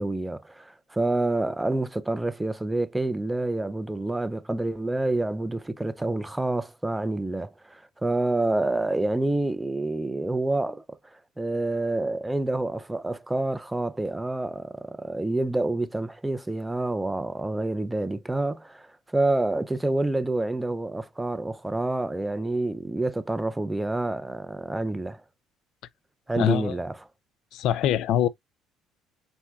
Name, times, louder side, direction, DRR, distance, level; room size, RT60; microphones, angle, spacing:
voice 1, 0.0-25.2 26.3-27.0, right 2 dB, 10° right, 0.4 m, -28 dB
voice 2, 26.4-26.8 27.5-28.3, left 10 dB, 70° left, 0.4 m, -23 dB
4.4 x 4.4 x 2.3 m
cardioid pair, 115°, 0 cm